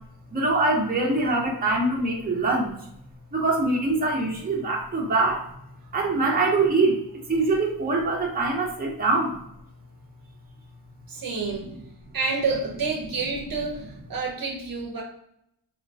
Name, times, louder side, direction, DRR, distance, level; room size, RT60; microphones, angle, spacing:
voice 1, 0.3-2.7 3.4-5.4 5.9-7.0 7.3-9.3, right 2 dB, 20° right, -2 dB, 0.9 m, -23 dB
voice 2, 11.1-11.7 12.1-15.0, right 4 dB, 55° right, 1 dB, 0.8 m, -29 dB
3.2 x 2.2 x 4.0 m, 0.75 s
cardioid pair, 100°, 41 cm